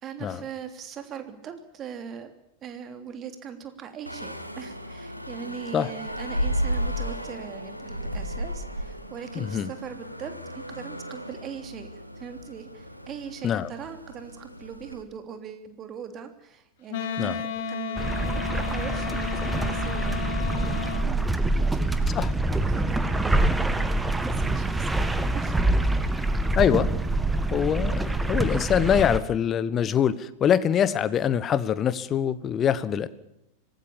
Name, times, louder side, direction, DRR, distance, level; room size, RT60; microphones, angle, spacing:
voice 1, 0.0-2.3 2.6-11.9 12.2-20.5 21.0-25.6 26.0-26.4 27.7-28.1, right 7 dB, 30° right, 8 dB, 3.2 m, -41 dB
sound 1, 4.1-15.0, equal, 90° left, 2.0 m, -34 dB
voice 2, 9.3-9.7 13.4-13.7 17.2-17.4 22.1-22.3 26.6-26.9 27.5-33.1, left 9 dB, 25° left, 16 dB, 1.3 m, -24 dB
Wind instrument woodwind instrument, 16.9-21.1, left 5 dB, 55° left, 2.2 m, -32 dB
sound 2, 18.0-29.2, right 2 dB, 5° right, 1.7 m, -25 dB
25.5 x 18.5 x 7.3 m, 0.85 s
figure-of-eight pair, 90°, 0 cm